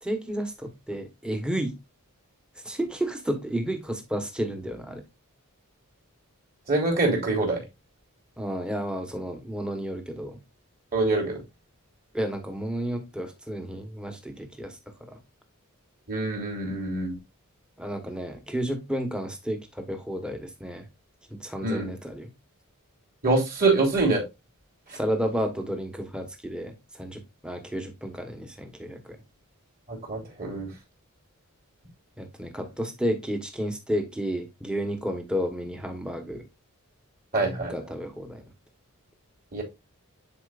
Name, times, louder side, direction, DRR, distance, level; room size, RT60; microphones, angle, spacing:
voice 1, 0.0-1.7 2.6-5.0 8.4-10.4 12.1-14.8 15.1-15.2 17.8-20.8 21.3-22.3 24.9-29.2 32.2-36.4 37.7-38.4, equal, 5° right, 1.1 m, -31 dB
voice 2, 6.7-7.6 10.9-11.4 16.1-17.2 21.6-21.9 23.2-24.2 29.9-30.7 37.3-37.7 39.5-39.6, right 3 dB, 40° right, 3.2 m, -25 dB
9.9 x 4.5 x 2.5 m
head